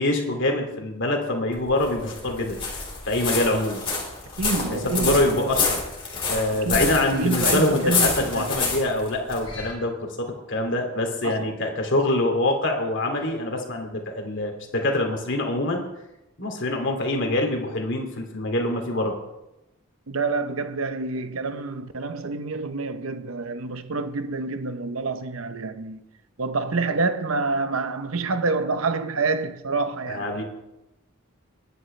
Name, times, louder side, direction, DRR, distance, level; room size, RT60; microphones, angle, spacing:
voice 1, 0.0-2.6 3.1-3.8 4.7-5.8 6.3-15.8 16.4-19.1 30.1-30.4, left 1 dB, 60° left, 2.6 m, -25 dB
sound 1, 1.5-9.7, left 4 dB, 25° left, 4.0 m, -28 dB
voice 2, 4.4-5.7 6.5-8.6 11.2-11.5 20.1-26.0 26.4-30.4, right 3 dB, 80° right, 0.9 m, -27 dB
22.0 x 9.7 x 3.3 m
head